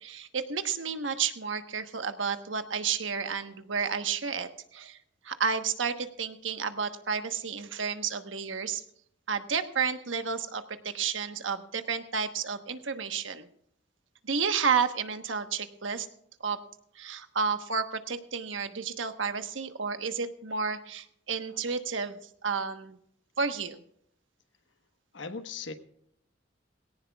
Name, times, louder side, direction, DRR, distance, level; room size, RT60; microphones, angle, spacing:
voice 1, 0.0-5.0 5.2-8.8 9.3-13.5 14.2-16.1 16.4-16.6 17.0-23.0 23.4-23.8, right 6 dB, 85° right, 9 dB, 1.2 m, -31 dB
voice 2, 25.1-25.7, left 4 dB, 75° left, 8 dB, 1.2 m, -38 dB
19.0 x 17.5 x 2.4 m, 0.71 s
head